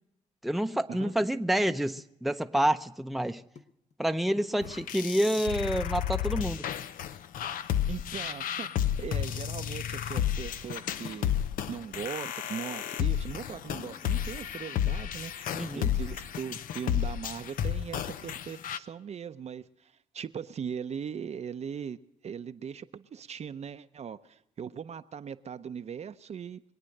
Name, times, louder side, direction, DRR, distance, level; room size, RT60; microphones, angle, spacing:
voice 1, 0.4-3.4 4.0-6.6 15.5-15.9, right 1 dB, ahead, 0.6 m, -28 dB
sound 1, 0.8-1.0 1.2-2.7 3.0-3.7 3.9-4.1 4.4-5.7, left 5 dB, 55° left, 1.1 m, -51 dB
sound 2, 4.6-18.8, left 10 dB, 80° left, 0.6 m, -32 dB
voice 2, 7.9-11.3 11.7-15.4 15.7-26.6, right 7 dB, 50° right, 0.6 m, -39 dB
23.0 x 8.9 x 6.5 m
cardioid pair, 75°, 14 cm